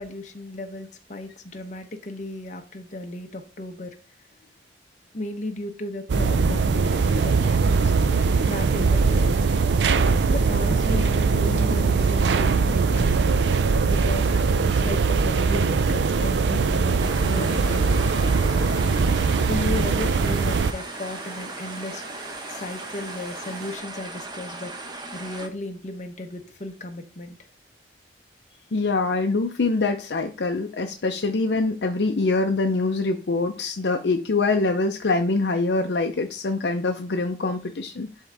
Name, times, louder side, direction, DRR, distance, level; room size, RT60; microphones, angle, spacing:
voice 1, 0.0-3.9 5.1-7.9 8.5-9.4 10.3-13.5 13.9-18.3 19.4-22.0 22.5-24.7 25.1-27.4, left 2 dB, 45° left, 4 dB, 0.9 m, -35 dB
sound 1, 6.1-20.7, right 4 dB, 80° right, 0.4 m, -21 dB
sound 2, 6.8-23.8, right 3 dB, 60° right, 1.5 m, -44 dB
sound 3, 17.0-25.5, right 2 dB, 25° right, 0.9 m, -38 dB
voice 2, 28.7-38.1, left 3 dB, 70° left, 5 dB, 0.6 m, -24 dB
11.0 x 3.7 x 3.4 m, 0.36 s
head